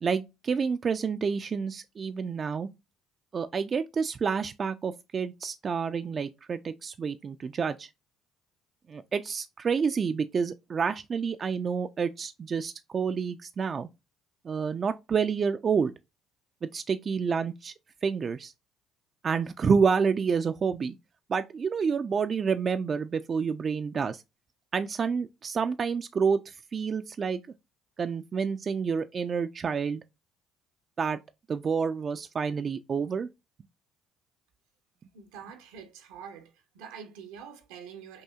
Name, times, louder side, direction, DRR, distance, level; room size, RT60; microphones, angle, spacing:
voice 1, 0.0-2.7 3.3-7.9 8.9-13.9 14.4-15.9 16.7-17.7 18.0-18.5 19.2-20.9 21.3-24.2 24.7-27.4 28.0-30.0 31.0-31.2 31.5-33.3, right 6 dB, 40° right, 0.3 m, -29 dB
voice 2, 35.1-36.5 36.7-38.2, right 7 dB, 80° right, 0.8 m, -45 dB
5.6 x 2.7 x 2.3 m
hypercardioid pair, 65°, 0 cm